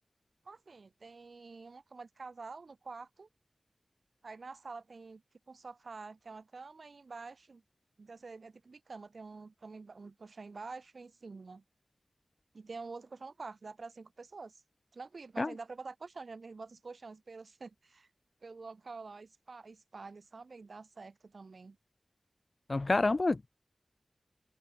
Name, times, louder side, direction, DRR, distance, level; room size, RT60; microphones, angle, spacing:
voice 1, 0.4-3.3 4.2-5.2 5.5-7.6 8.0-11.6 12.5-14.6 14.9-18.1 18.4-21.8, right 4 dB, 70° right, 4.7 m, -47 dB
voice 2, 22.7-23.6, left 2 dB, 45° left, 0.7 m, -28 dB
open air
wide cardioid pair, 70°, 0 cm